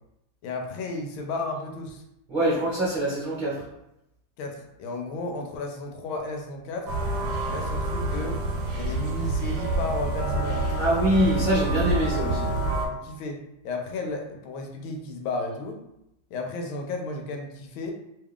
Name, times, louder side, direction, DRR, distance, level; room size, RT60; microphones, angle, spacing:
voice 1, 0.4-2.0 4.4-6.9 7.4-8.4 8.8-10.7 12.8-15.8 16.3-17.9, left 2 dB, 85° left, 3 dB, 1.4 m, -33 dB
voice 2, 2.3-3.6 10.7-12.6, right 1 dB, 30° right, -8 dB, 0.9 m, -24 dB
sound 1, 6.9-12.9, right 2 dB, 70° right, 1.1 m, -27 dB
3.4 x 2.3 x 3.6 m, 0.84 s
omnidirectional pair, 2.2 m